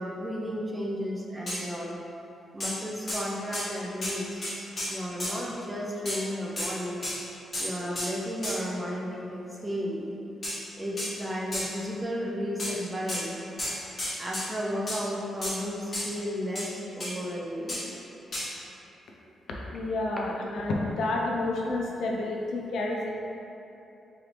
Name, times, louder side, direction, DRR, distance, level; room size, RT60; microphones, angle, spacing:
voice 1, 0.0-2.0 2.5-4.5 4.9-7.0 7.6-10.2 10.8-13.4 14.2-17.9, equal, 15° right, -3 dB, 0.5 m, -33 dB
sound 1, 1.5-1.6 2.6-2.8 3.1-3.3 3.5-3.7 4.0-4.2 4.4-5.3 6.0-6.2 6.6-6.7 7.0-7.2 7.5-7.7 7.9-8.1 8.4-8.6 10.4-10.6 11.0-11.1 11.5-11.7 12.6-12.7 13.1-13.2 13.6-14.5 14.9-15.0 15.4-15.6 15.9-16.1 16.5-16.7 17.0-17.1 17.7-17.8 18.3-18.5, left 1 dB, 30° left, 1.3 m, -32 dB
voice 2, 19.7-23.1, left 2 dB, 75° left, -1 dB, 0.5 m, -29 dB
3.8 x 3.1 x 3.2 m, 2.9 s
cardioid pair, 110°, 0 cm